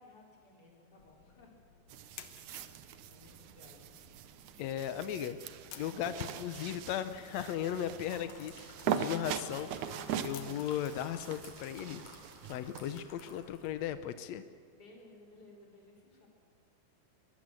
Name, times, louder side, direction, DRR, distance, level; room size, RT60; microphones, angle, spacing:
voice 1, 0.0-1.5 2.4-3.9 14.7-16.3, left 2 dB, 25° left, -2 dB, 4.8 m, -58 dB
sound 1, 1.0-14.1, left 10 dB, 70° left, 1.7 m, -58 dB
sound 2, 1.9-13.0, right 8 dB, 70° right, 2.1 m, -41 dB
voice 2, 4.6-5.4 5.8-12.0 12.5-14.4, left 10 dB, 85° left, 11 dB, 1.5 m, -37 dB
sound 3, 8.1-13.8 14.1-14.3, left 3 dB, 55° left, 4.4 m, -55 dB
23.0 x 21.5 x 7.7 m, 2.1 s
omnidirectional pair, 4.2 m